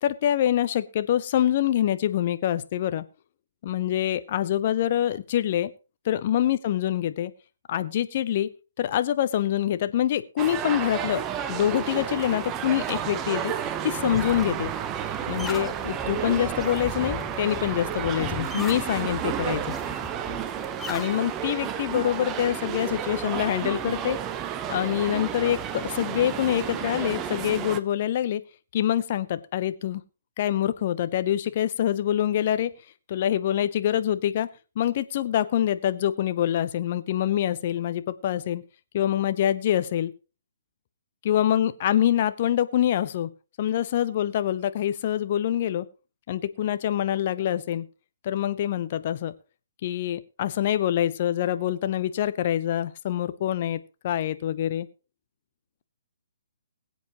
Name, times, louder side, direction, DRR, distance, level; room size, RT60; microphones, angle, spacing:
voice 1, 0.0-3.0 3.6-5.7 6.0-7.3 7.7-8.5 8.8-11.2 11.5-13.5 13.8-14.7 15.3-19.8 20.9-24.2 24.7-28.4 28.7-30.0 30.4-32.7 33.1-34.5 34.8-38.6 38.9-40.1 41.2-43.3 43.6-45.9 46.3-47.9 48.2-49.3 49.8-54.9, left 11 dB, 40° left, 13 dB, 0.8 m, -25 dB
sound 1, 10.4-27.8, right 9 dB, 20° right, 0.8 m, -31 dB
sound 2, 13.7-21.1, left 3 dB, 5° left, 0.9 m, -39 dB
21.5 x 8.0 x 3.0 m, 0.32 s
figure-of-eight pair, 130°, 0 cm